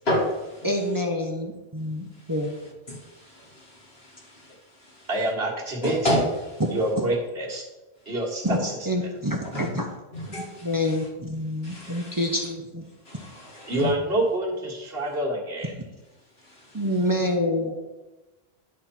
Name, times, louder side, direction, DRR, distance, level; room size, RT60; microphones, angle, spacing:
voice 1, 0.0-0.7 2.1-2.3 2.9-5.1 5.8-6.6 9.5-9.7 10.1-11.0 11.6-12.3 13.0-13.9 16.4-16.9, equal, 70° left, -3 dB, 2.8 m, -31 dB
voice 2, 0.6-2.5 7.0-7.1 8.4-8.6 8.8-9.8 10.6-12.8 16.7-17.7, left 1 dB, 20° right, 2 dB, 1.0 m, -27 dB
voice 3, 5.1-6.0 6.7-7.6 8.1-8.7 13.7-15.7, right 1 dB, 65° right, -2 dB, 2.0 m, -27 dB
10.5 x 4.2 x 6.0 m, 1.1 s
omnidirectional pair, 1.1 m